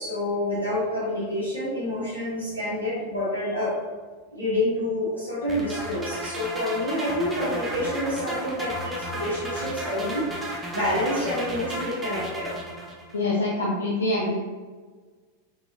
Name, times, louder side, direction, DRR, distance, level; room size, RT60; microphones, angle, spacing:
voice 1, 0.0-3.8 4.3-10.3 10.7-12.5, left 1 dB, 85° left, -9 dB, 1.4 m, -28 dB
sound 1, 5.5-13.2, right 1 dB, 15° right, 0.8 m, -34 dB
voice 2, 13.1-14.3, left 2 dB, 70° left, -3 dB, 0.6 m, -25 dB
4.6 x 3.9 x 2.5 m, 1.4 s
figure-of-eight pair, 90°, 0 cm